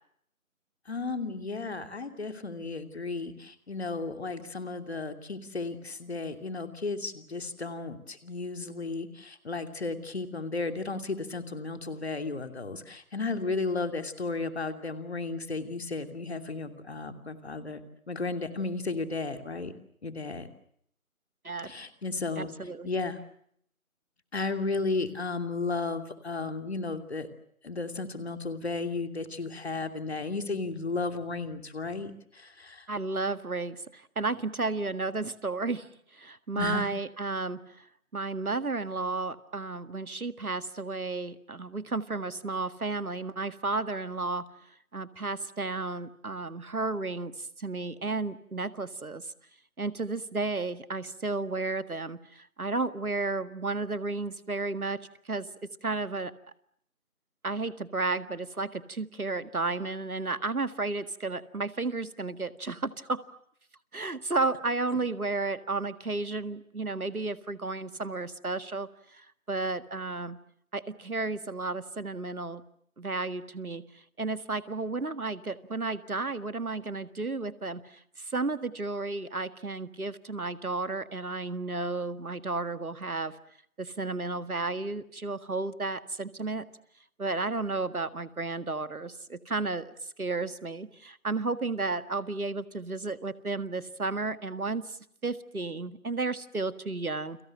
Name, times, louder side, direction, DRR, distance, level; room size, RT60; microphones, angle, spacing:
voice 1, 0.9-17.8 18.1-19.7 20.0-20.5 21.6-22.5 22.8-23.2 24.3-27.3 27.6-32.9 36.6-36.9, left 3 dB, 45° left, 8 dB, 2.9 m, -34 dB
voice 2, 22.4-22.9 32.9-37.9 38.1-44.5 44.9-49.3 49.8-56.3 57.4-63.2 63.9-70.4 70.7-72.6 73.0-83.3 83.8-86.7 87.2-95.0 95.2-97.4, right 3 dB, 85° right, 12 dB, 1.9 m, -33 dB
30.0 x 24.0 x 7.7 m, 0.70 s
figure-of-eight pair, 160°, 43 cm